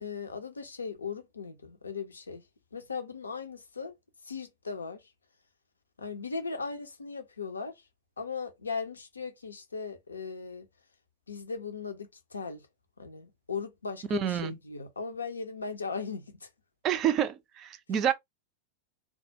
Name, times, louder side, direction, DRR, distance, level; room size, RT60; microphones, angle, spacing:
voice 1, 0.0-2.4 2.7-3.9 4.2-5.0 6.0-7.8 8.2-10.7 11.3-12.6 13.0-16.5, left 5 dB, 75° left, 0.5 m, -38 dB
voice 2, 14.1-14.6 16.8-18.1, right 9 dB, 35° right, 0.4 m, -28 dB
2.2 x 2.1 x 2.7 m
figure-of-eight pair, 90°, 0 cm